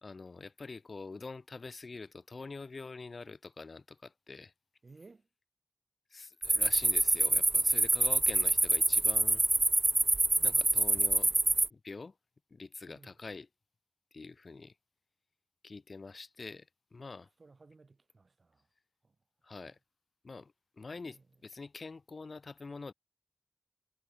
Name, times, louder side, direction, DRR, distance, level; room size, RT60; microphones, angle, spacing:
voice 1, 0.0-4.5 6.1-9.4 10.4-11.3 11.7-12.1 12.5-13.5 14.1-14.7 15.6-16.7 16.9-17.3 19.4-19.8 20.2-22.9, left 4 dB, 90° left, 3.6 m, -45 dB
voice 2, 4.8-5.3 8.0-8.7 10.4-10.7 12.9-13.2 17.4-18.7 19.0-19.1 21.0-21.2, right 3 dB, 80° right, 5.0 m, -59 dB
sound 1, 6.4-11.7, right 2 dB, 50° right, 0.8 m, -26 dB
wide cardioid pair, 45°, 0 cm